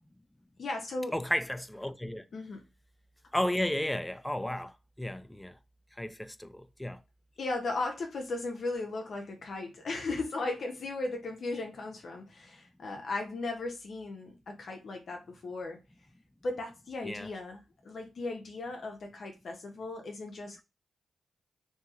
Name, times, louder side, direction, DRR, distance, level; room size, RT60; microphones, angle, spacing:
voice 1, 0.6-1.2 2.3-2.6 7.4-15.8 16.4-20.6, left 2 dB, 65° left, 0.6 m, -36 dB
voice 2, 1.1-2.2 3.3-5.6 6.0-7.0 17.0-17.3, left 1 dB, 10° left, 0.3 m, -33 dB
2.7 x 2.7 x 2.4 m
supercardioid pair, 45°, 0 cm